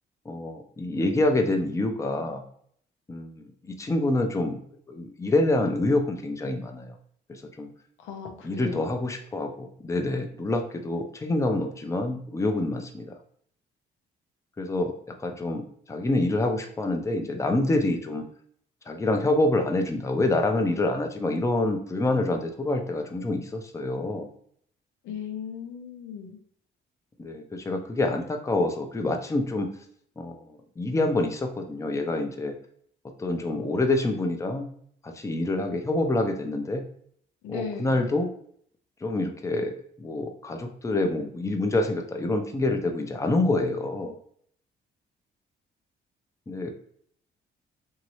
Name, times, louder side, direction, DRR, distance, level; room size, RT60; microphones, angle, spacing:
voice 1, 0.3-2.4 3.1-4.6 4.9-6.9 7.3-7.7 8.4-13.1 14.6-14.9 15.2-15.6 15.9-18.3 18.9-24.3 27.2-29.7 30.2-32.5 33.2-34.7 35.0-36.8 37.5-38.3 39.0-39.7 40.0-44.2 46.5-46.8, left 2 dB, 15° left, 4 dB, 0.5 m, -27 dB
voice 2, 8.0-8.9 25.0-26.4 37.4-38.1, left 6 dB, 90° left, 3 dB, 0.6 m, -37 dB
2.9 x 2.7 x 2.9 m, 0.62 s
cardioid pair, 90°, 20 cm